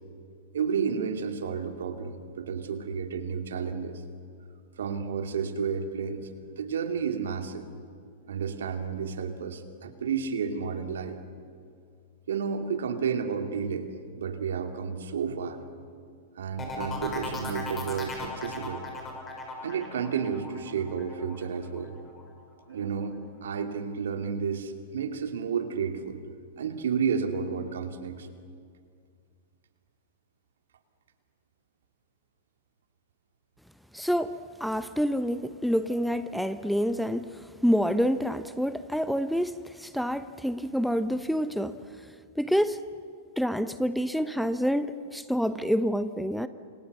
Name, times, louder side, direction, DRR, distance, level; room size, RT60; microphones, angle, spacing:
voice 1, 0.5-4.0 4.8-7.7 8.3-11.2 12.3-13.9 14.1-15.6 16.4-18.8 19.6-21.9 22.7-26.2 26.6-28.3, right 6 dB, 70° right, 6 dB, 2.6 m, -31 dB
sound 1, 16.6-22.2 22.6-23.1, left 3 dB, 20° left, 6.0 m, -38 dB
voice 2, 33.9-34.3 34.6-41.8 42.4-42.8 43.4-46.5, equal, ahead, 12 dB, 0.8 m, -27 dB
29.0 x 27.0 x 6.8 m, 2.3 s
figure-of-eight pair, 105°, 0 cm